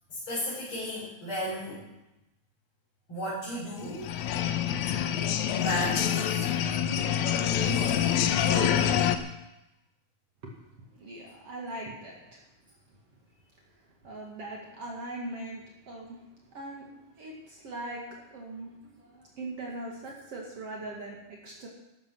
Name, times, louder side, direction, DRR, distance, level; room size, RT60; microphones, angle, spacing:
voice 1, 0.1-1.8 3.1-4.1 5.5-6.5 7.3-9.0, left 1 dB, 45° left, -8 dB, 6.1 m, -34 dB
sound 1, 3.8-9.2, left 9 dB, 80° left, 2.2 m, -26 dB
voice 2, 11.0-12.4 14.0-16.2 16.5-21.7, right 2 dB, 55° right, -2 dB, 2.9 m, -41 dB
13.5 x 13.5 x 6.3 m, 0.94 s
omnidirectional pair, 3.3 m